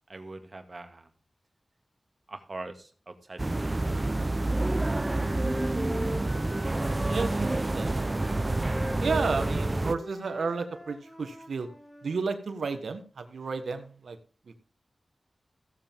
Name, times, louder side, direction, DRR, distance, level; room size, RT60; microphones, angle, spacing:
voice 1, 0.1-1.1 2.3-4.1, right 2 dB, 55° right, 7 dB, 2.0 m, -43 dB
sound 1, 3.4-10.0, right 2 dB, 35° right, 0.7 m, -28 dB
Wind instrument woodwind instrument, 4.3-7.6 8.0-12.2, equal, 10° left, 3.5 m, -41 dB
voice 2, 6.9-7.9 9.0-11.7 12.0-14.2 14.5-14.6, right 4 dB, 90° right, 8 dB, 1.3 m, -32 dB
16.0 x 7.5 x 3.6 m, 0.37 s
cardioid pair, 40°, 0 cm